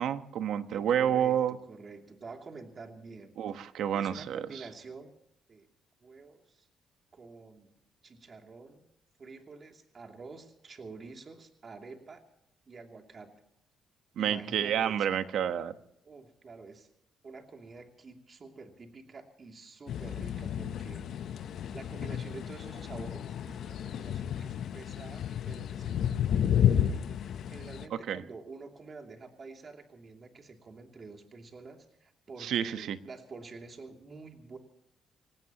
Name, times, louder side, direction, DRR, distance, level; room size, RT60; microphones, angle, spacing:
voice 1, 0.0-1.5 3.4-4.4 14.2-15.7 28.1-28.2 32.4-33.0, right 9 dB, 75° right, 10 dB, 1.1 m, -29 dB
voice 2, 0.7-3.4 3.9-5.1 5.5-5.7 6.0-6.7 7.1-7.7 8.0-8.8 9.2-12.2 12.7-13.3 14.2-15.1 16.0-16.9 17.2-21.0 21.7-34.6, right 4 dB, 40° right, 3 dB, 2.8 m, -48 dB
sound 1, 19.9-27.9, left 9 dB, 70° left, 0.8 m, -31 dB
25.0 x 19.0 x 3.0 m, 0.77 s
cardioid pair, 90°, 0 cm